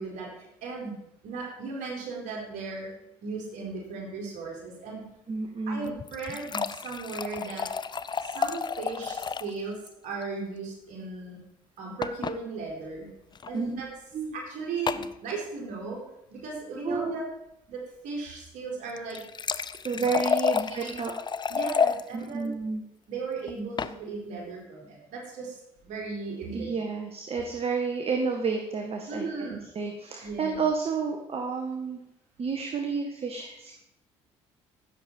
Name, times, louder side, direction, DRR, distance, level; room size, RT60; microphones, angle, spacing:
voice 1, 0.0-2.9 3.2-5.0 5.7-7.7 8.2-11.4 11.8-13.1 13.5-13.9 14.3-16.0 16.3-17.2 17.7-19.2 20.0-20.1 20.5-21.0 21.5-22.5 23.1-25.6 25.8-26.7 29.1-29.6 30.2-30.6, right 4 dB, 65° right, -2 dB, 4.0 m, -36 dB
voice 2, 5.3-5.9 13.5-13.8 14.1-14.3 16.8-17.2 19.8-21.1 22.1-22.8 26.5-32.0 32.4-33.8, right 5 dB, 45° right, 3 dB, 1.6 m, -30 dB
sound 1, 5.8-9.6 9.9-10.0 10.2-10.3 12.0-12.4 13.3-13.5 14.9-15.1 18.9-22.0 23.5-24.0, left 6 dB, 30° left, 0.6 m, -30 dB
16.0 x 7.1 x 4.6 m, 0.80 s
hypercardioid pair, 60°, 14 cm